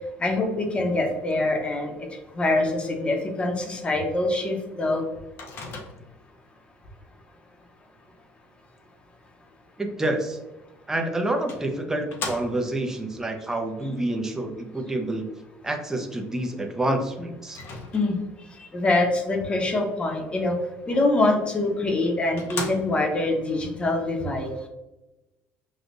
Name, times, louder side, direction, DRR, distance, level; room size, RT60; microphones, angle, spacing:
voice 1, 0.2-1.9 2.4-5.1 17.9-18.2 18.6-20.6 20.9-24.5, left 2 dB, 25° left, 2 dB, 0.9 m, -24 dB
Microwave oven, 5.4-6.3 10.6-10.7 11.5-12.9 17.5-18.4 21.5-21.6 22.0-22.1 22.4-23.2, left 3 dB, 55° left, 0.8 m, -36 dB
voice 2, 9.8-10.4 10.9-15.3 15.6-17.6, right 1 dB, 10° right, 3 dB, 0.7 m, -28 dB
6.2 x 2.4 x 2.6 m, 1.0 s
cardioid pair, 115°, 5 cm